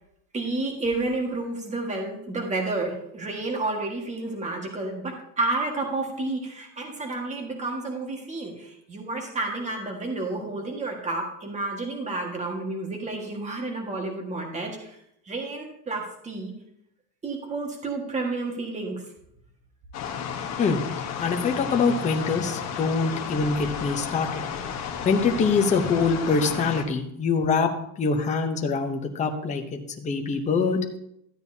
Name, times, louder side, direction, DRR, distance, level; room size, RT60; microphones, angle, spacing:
voice 1, 0.3-14.9 15.3-16.5 17.2-19.0, right 2 dB, 15° right, 1 dB, 1.6 m, -30 dB
sound 1, 19.9-26.8, left 7 dB, 35° left, 1.1 m, -33 dB
voice 2, 21.2-24.4 25.0-27.7 28.0-30.8, left 4 dB, 15° left, 4 dB, 0.8 m, -24 dB
13.0 x 8.9 x 2.8 m, 0.76 s
cardioid pair, 160°, 48 cm